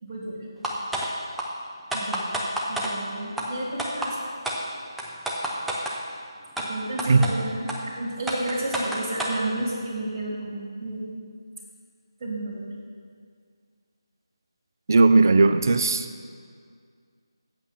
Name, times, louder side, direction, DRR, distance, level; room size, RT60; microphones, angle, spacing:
voice 1, 0.0-0.5 1.9-2.3 2.7-4.2 6.7-11.0 12.2-12.7, right 1 dB, 25° right, -5 dB, 2.7 m, -31 dB
sound 1, 0.6-1.1 1.4-1.5 1.9-2.9 3.4-3.5 3.8-4.1 4.4-4.6 5.0-6.0 6.6-6.7 7.0-7.3 7.7-7.8 8.3-9.4, right 1 dB, ahead, 0.6 m, -28 dB
voice 2, 14.9-16.1, right 3 dB, 45° right, 10 dB, 0.5 m, -17 dB
8.5 x 8.0 x 5.9 m, 2.1 s
figure-of-eight pair, 160°, 3 cm